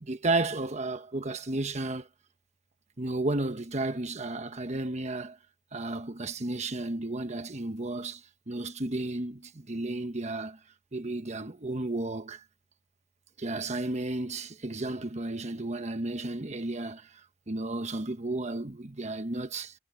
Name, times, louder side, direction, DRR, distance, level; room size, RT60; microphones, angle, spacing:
voice 1, 0.0-2.1 3.0-5.4 5.7-10.6 10.9-12.4 13.4-17.2 17.5-19.7, right 2 dB, 35° right, 1.2 m, -33 dB
head